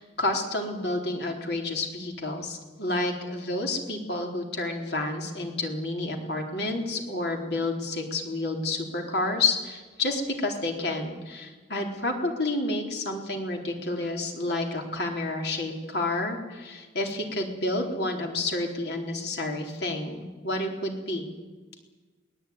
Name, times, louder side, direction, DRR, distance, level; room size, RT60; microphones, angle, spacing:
voice 1, 0.0-21.3, left 2 dB, 60° left, 2 dB, 4.2 m, -30 dB
23.0 x 19.0 x 9.6 m, 1.3 s
head